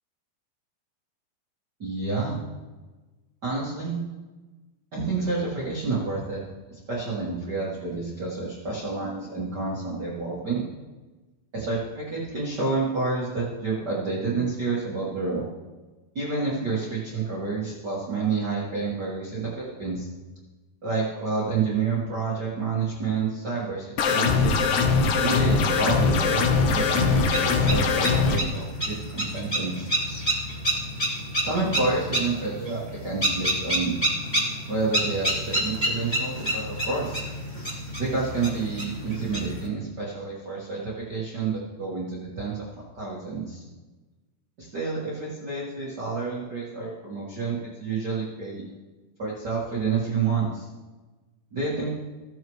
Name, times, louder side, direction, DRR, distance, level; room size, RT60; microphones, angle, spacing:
voice 1, 1.8-2.4 3.4-4.0 4.9-6.4 6.7-10.6 11.5-15.5 16.1-20.1 20.8-24.6 25.2-29.9 31.4-34.0 34.7-37.3 38.0-42.6 42.9-43.6 44.6-48.6 49.2-50.7 51.5-51.9, right 4 dB, 75° right, -7 dB, 0.9 m, -29 dB
sound 1, 24.0-28.4, left 4 dB, 80° left, 1.9 m, -21 dB
sound 2, 27.0-39.7, right 1 dB, 20° left, 1.2 m, -29 dB
15.5 x 7.1 x 3.1 m, 1.2 s
omnidirectional pair, 4.9 m